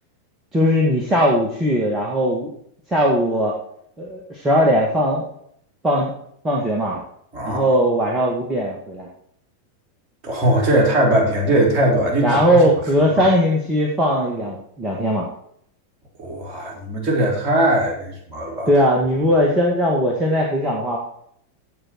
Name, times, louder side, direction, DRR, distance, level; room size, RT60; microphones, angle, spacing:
voice 1, 0.5-2.5 2.9-3.6 4.0-5.2 5.8-6.1 6.4-7.0 7.4-9.1 12.2-15.3 18.7-21.0, equal, 15° right, -2 dB, 2.0 m, -19 dB
voice 2, 7.3-7.6 10.2-12.6 13.2-13.3 16.2-18.7, right 1 dB, 30° right, -1 dB, 4.1 m, -20 dB
15.5 x 5.3 x 4.6 m, 0.67 s
figure-of-eight pair, 90°, 0 cm